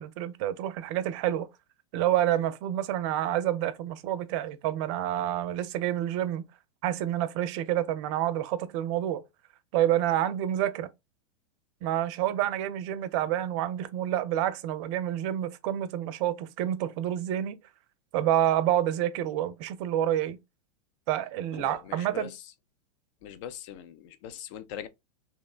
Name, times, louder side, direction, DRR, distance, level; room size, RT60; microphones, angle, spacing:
voice 1, 0.0-1.5 1.9-6.4 6.8-9.2 9.7-10.9 11.8-17.6 18.1-20.4 21.1-22.3, right 12 dB, 50° right, 0.5 m, -28 dB
voice 2, 21.5-22.5 23.2-24.9, left 9 dB, 50° left, 0.4 m, -41 dB
2.8 x 2.1 x 2.3 m
hypercardioid pair, 110°, 20 cm